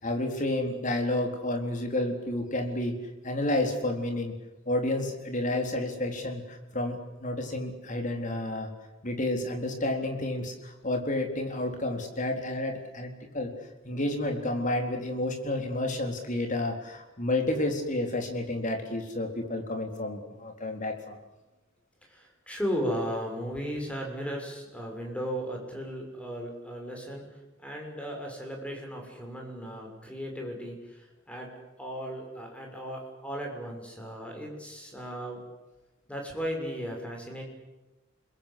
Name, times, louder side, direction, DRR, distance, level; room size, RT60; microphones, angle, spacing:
voice 1, 0.0-4.4 4.7-8.7 9.0-13.5 13.8-21.2, left 1 dB, 40° left, 4 dB, 4.1 m, -30 dB
voice 2, 22.0-31.5 31.8-35.4 36.1-37.4, equal, 5° left, 1 dB, 6.4 m, -36 dB
29.5 x 22.0 x 8.4 m, 1.0 s
head